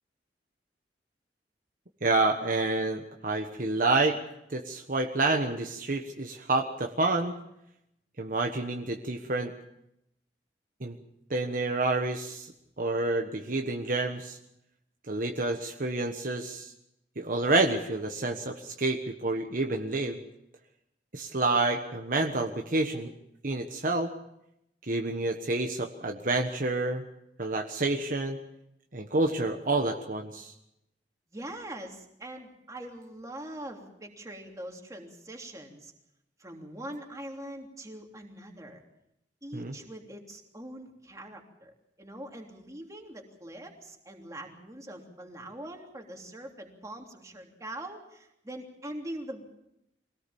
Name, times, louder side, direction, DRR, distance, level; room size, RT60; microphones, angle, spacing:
voice 1, 2.0-4.2 4.5-7.4 8.2-9.5 10.8-10.9 11.3-12.5 12.8-14.4 15.1-16.7 17.2-20.2 21.1-23.1 23.4-24.1 24.9-27.0 27.4-28.4 28.9-30.5 39.5-39.7, right 2 dB, 50° right, 3 dB, 1.4 m, -28 dB
voice 2, 31.3-35.9 36.4-38.8 39.4-49.6, right 1 dB, 20° right, 1 dB, 3.2 m, -43 dB
24.5 x 18.0 x 7.2 m, 0.81 s
head